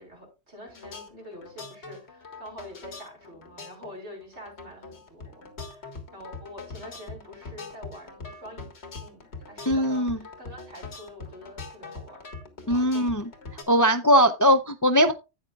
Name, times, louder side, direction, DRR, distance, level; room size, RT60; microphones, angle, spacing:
voice 1, 0.0-12.2 12.6-13.2, equal, 60° right, -2 dB, 5.7 m, -46 dB
sound 1, 0.7-13.6, left 4 dB, 60° left, 1.9 m, -42 dB
voice 2, 9.7-10.2 12.7-13.2 13.7-15.1, equal, 30° left, 9 dB, 0.3 m, -20 dB
12.0 x 8.8 x 2.4 m, 0.27 s
omnidirectional pair, 1.3 m